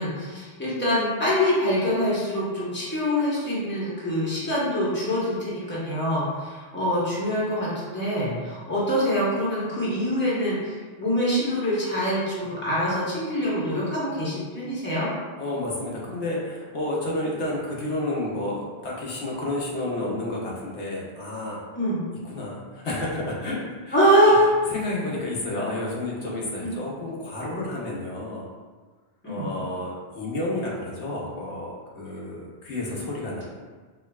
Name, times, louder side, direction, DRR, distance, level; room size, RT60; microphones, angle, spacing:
voice 1, 0.0-15.1 21.7-22.0 23.9-24.5 26.6-26.8 29.2-29.5, equal, 10° left, -8 dB, 1.0 m, -24 dB
voice 2, 15.4-21.6 22.2-24.4 24.7-28.5 29.2-33.4, left 1 dB, 85° left, -4 dB, 1.2 m, -31 dB
4.6 x 3.0 x 2.3 m, 1.4 s
omnidirectional pair, 1.1 m